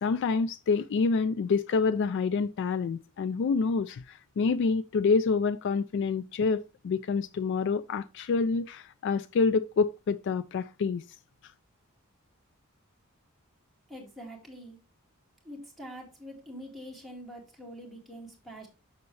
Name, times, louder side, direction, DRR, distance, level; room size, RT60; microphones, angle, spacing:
voice 1, 0.0-11.0, left 4 dB, 55° left, 0.3 m, -27 dB
voice 2, 13.9-14.8 15.4-18.7, equal, ahead, 2.3 m, -45 dB
6.9 x 6.6 x 3.2 m
head